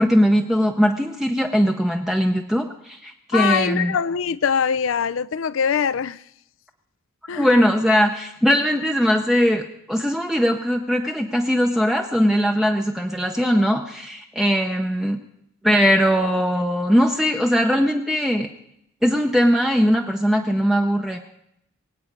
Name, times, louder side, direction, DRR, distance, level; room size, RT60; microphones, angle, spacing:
voice 1, 0.0-3.9 7.4-15.2 15.6-18.5 19.0-21.2, equal, ahead, 0.6 m, -20 dB
voice 2, 3.3-6.2 7.3-7.5, left 7 dB, 70° left, 0.4 m, -23 dB
23.5 x 8.5 x 5.3 m
head